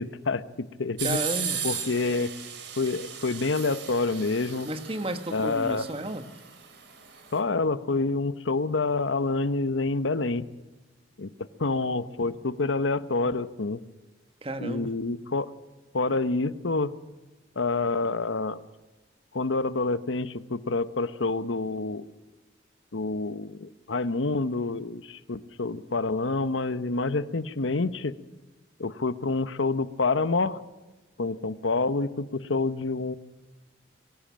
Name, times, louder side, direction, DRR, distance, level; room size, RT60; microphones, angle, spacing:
voice 1, 0.0-1.2 1.6-2.3 2.8-4.7 5.3-5.9 7.3-10.5 11.2-11.3 11.6-13.8 14.6-15.5 15.9-16.9 17.6-18.6 19.3-22.1 22.9-28.1 28.8-30.6 31.2-33.2, left 3 dB, 90° left, 14 dB, 0.9 m, -27 dB
voice 2, 1.0-1.6 4.6-6.3 14.4-15.0, right 1 dB, 30° right, 9 dB, 1.5 m, -32 dB
sound 1, 1.0-7.4, right 7 dB, 65° right, 3.6 m, -36 dB
23.0 x 16.0 x 7.5 m, 1.1 s
head